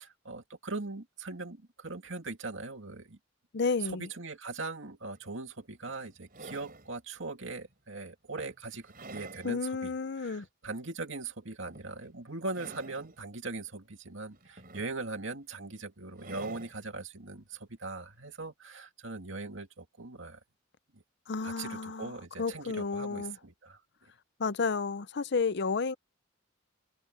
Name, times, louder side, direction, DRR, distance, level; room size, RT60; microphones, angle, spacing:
voice 1, 0.0-3.2 3.9-20.4 20.9-21.0 21.4-23.8, right 3 dB, 65° right, 2.5 m, -40 dB
voice 2, 3.5-4.1 9.4-10.5 21.3-22.1 22.4-23.4 24.4-25.9, left 4 dB, 55° left, 0.6 m, -31 dB
sound 1, 5.1-5.2 5.9-6.9 7.6-7.7 8.4-9.5 10.0-10.1 11.7-12.1 12.4-13.2 14.3-15.2 16.2-16.8 18.2-18.3, right 2 dB, 45° right, 6.6 m, -47 dB
head